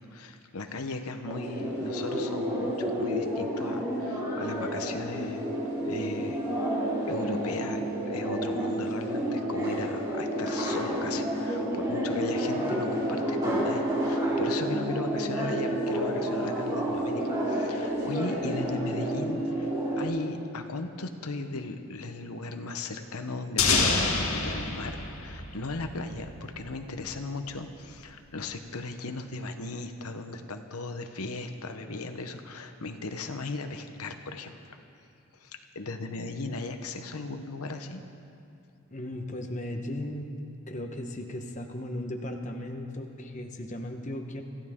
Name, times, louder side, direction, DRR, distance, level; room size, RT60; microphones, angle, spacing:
voice 1, 0.1-5.5 5.8-19.7 20.0-34.8 35.3-38.0, left 3 dB, 90° left, 6 dB, 1.0 m, -37 dB
sound 1, 1.3-20.1, right 1 dB, 15° right, 4.0 m, -30 dB
sound 2, 23.6-26.4, left 4 dB, 75° left, 2.0 m, -27 dB
voice 2, 38.9-40.3 40.7-44.4, left 1 dB, 35° left, 4 dB, 1.1 m, -36 dB
26.0 x 15.0 x 3.7 m, 2.6 s
head